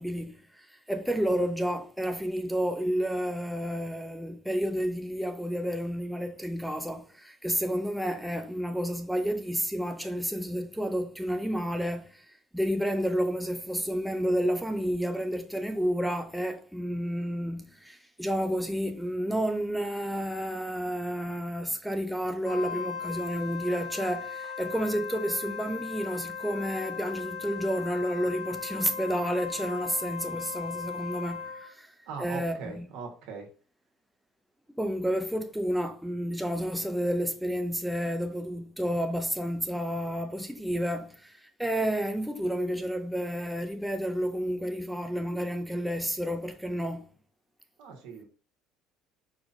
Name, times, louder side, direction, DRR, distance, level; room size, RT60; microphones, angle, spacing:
voice 1, 0.0-12.3 12.5-32.9 34.8-47.1, equal, ahead, 0.4 m, -30 dB
Wind instrument woodwind instrument, 22.4-31.7, left 6 dB, 40° left, 1.0 m, -38 dB
voice 2, 32.1-33.5 47.8-48.3, right 5 dB, 80° right, 1.4 m, -40 dB
4.7 x 3.9 x 2.6 m
cardioid pair, 120°, 0 cm